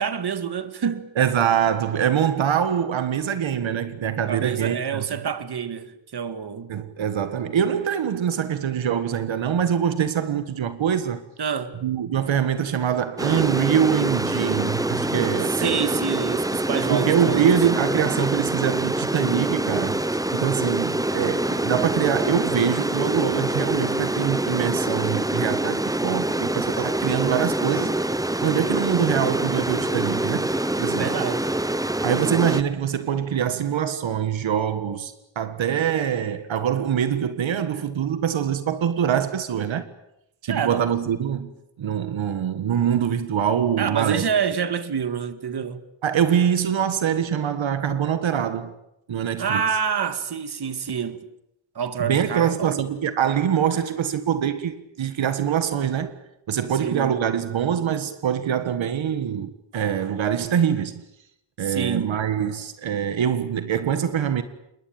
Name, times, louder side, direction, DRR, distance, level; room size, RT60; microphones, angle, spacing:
voice 1, 0.0-1.1 4.2-6.7 11.4-11.8 15.5-17.5 31.0-31.5 40.5-40.8 43.8-45.9 49.4-51.2 51.8-52.8 56.8-57.2 61.6-62.2, right 7 dB, 60° right, 2.1 m, -27 dB
voice 2, 1.2-5.0 6.7-11.2 11.8-15.9 16.9-20.0 20.3-27.9 28.4-30.5 30.8-31.1 32.0-39.9 40.4-41.5 41.8-44.2 46.0-48.7 49.1-49.6 52.0-56.1 56.5-61.0 61.6-64.4, right 8 dB, 85° right, 1.7 m, -24 dB
sound 1, 13.2-32.6, right 1 dB, 10° right, 1.0 m, -25 dB
28.0 x 21.0 x 8.9 m
wide cardioid pair, 100°, 45 cm